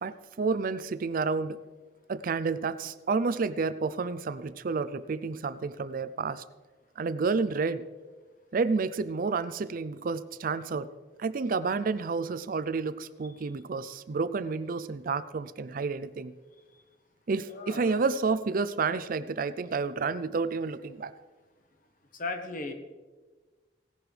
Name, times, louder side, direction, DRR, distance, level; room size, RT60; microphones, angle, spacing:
voice 1, 0.0-1.6 2.1-6.4 7.0-7.8 8.5-10.9 11.2-16.4 17.3-21.1, right 4 dB, 50° right, 15 dB, 0.4 m, -30 dB
voice 2, 17.5-18.0 22.1-22.7, left 3 dB, 50° left, 6 dB, 1.2 m, -36 dB
17.0 x 11.0 x 3.3 m, 1.3 s
head